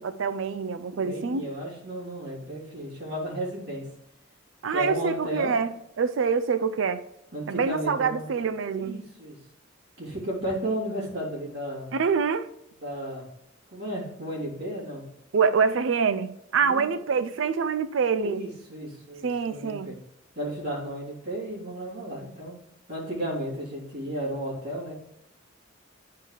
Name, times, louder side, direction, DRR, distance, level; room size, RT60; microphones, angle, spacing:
voice 1, 0.0-1.5 4.6-7.0 7.5-9.0 11.9-12.5 15.3-18.5 19.2-19.9, right 5 dB, 75° right, 0.4 m, -26 dB
voice 2, 1.0-3.8 4.7-5.5 7.3-8.3 8.7-9.4 10.0-11.9 12.8-13.2 13.7-15.0 16.6-16.9 18.2-19.9 20.3-22.6 22.9-24.9, right 1 dB, 55° right, 3.0 m, -33 dB
9.8 x 4.8 x 3.2 m
head